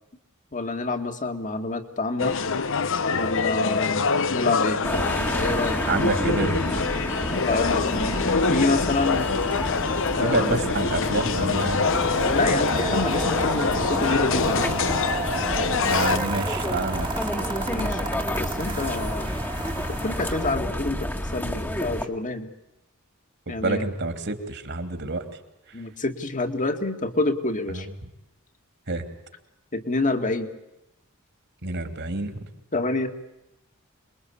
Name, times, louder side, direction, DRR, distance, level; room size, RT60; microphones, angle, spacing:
voice 1, 0.5-2.4 3.1-4.0 4.3-4.8 5.3-5.8 6.9-7.2 7.4-9.3 10.2-10.6 12.1-14.8 17.7-19.3 19.7-22.5 23.5-23.9 25.7-27.9 29.7-30.5 32.7-33.1, left 2 dB, 40° left, 6 dB, 2.2 m, -28 dB
sound 1, 2.2-16.2, left 4 dB, 65° left, 1.1 m, -25 dB
sound 2, 4.8-22.1, left 1 dB, 10° left, 1.8 m, -30 dB
voice 2, 5.8-6.7 10.2-11.9 15.9-17.1 23.5-25.2 25.7-25.8 27.7-27.8 28.9-29.0 31.6-32.4, right 3 dB, 55° right, 8 dB, 3.0 m, -28 dB
sound 3, 11.8-20.5, right 3 dB, 25° right, 1.8 m, -33 dB
27.5 x 22.0 x 8.7 m, 0.91 s
head